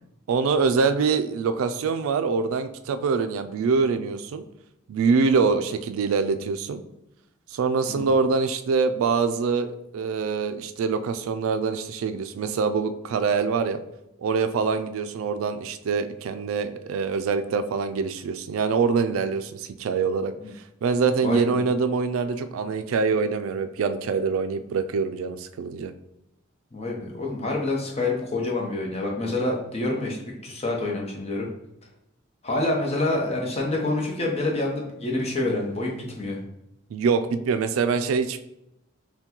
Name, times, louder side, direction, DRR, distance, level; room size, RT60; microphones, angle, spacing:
voice 1, 0.3-4.4 4.9-6.8 7.5-13.8 14.2-20.3 20.8-25.9 36.9-38.4, right 5 dB, 80° right, 10 dB, 0.3 m, -24 dB
voice 2, 21.2-21.6 26.7-30.2 30.4-31.5 32.4-36.4, left 2 dB, 30° left, -1 dB, 0.8 m, -27 dB
5.7 x 2.2 x 2.9 m, 0.86 s
head